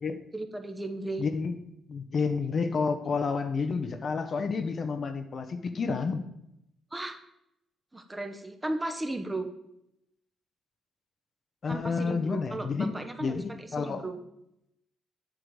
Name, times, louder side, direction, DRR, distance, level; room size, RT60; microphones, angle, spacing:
voice 1, 0.3-1.2 6.9-7.2 7.9-9.5 11.7-14.2, right 2 dB, 15° right, 7 dB, 0.9 m, -35 dB
voice 2, 1.2-1.6 1.9-6.2 11.6-12.9 13.2-14.0, left 5 dB, 45° left, 9 dB, 0.7 m, -30 dB
7.9 x 3.8 x 6.3 m, 0.81 s
cardioid pair, 90°, 0 cm